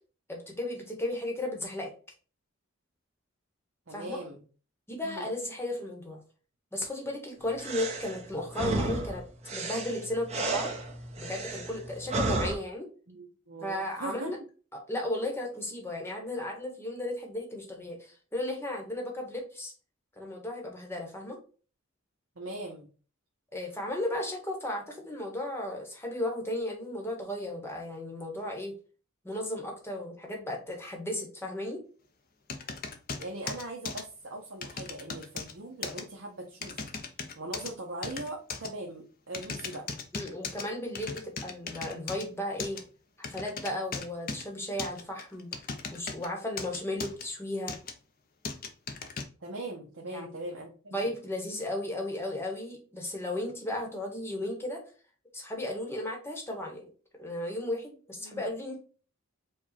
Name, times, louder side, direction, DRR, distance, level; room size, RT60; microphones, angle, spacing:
voice 1, 0.3-1.9 3.9-4.2 4.9-6.2 6.7-9.2 9.5-10.7 11.2-12.9 13.6-14.4 14.9-19.7 20.2-21.4 23.5-28.7 29.2-31.8 40.1-42.8 43.2-45.6 45.9-47.7 50.1-50.3 50.9-54.8 55.3-56.9 57.2-58.8, left 1 dB, 10° left, 1 dB, 1.1 m, -35 dB
voice 2, 3.9-4.4 5.0-5.3 13.1-14.3 22.4-22.9 33.2-36.9 37.4-39.9 49.4-51.0 58.2-58.5, right 2 dB, 60° right, 0 dB, 0.8 m, -40 dB
sound 1, 7.6-12.6, right 2 dB, 30° right, 0.9 m, -33 dB
sound 2, 32.5-34.0 34.6-35.5 35.8-36.0 36.6-37.7 38.0-38.7 39.3-40.6 41.0-42.2 42.6-42.8 43.2-44.4 44.8-46.3 46.6-47.2 47.7-47.9 48.5-49.2, left 5 dB, 40° left, 0.6 m, -37 dB
4.9 x 2.3 x 4.2 m, 0.38 s
head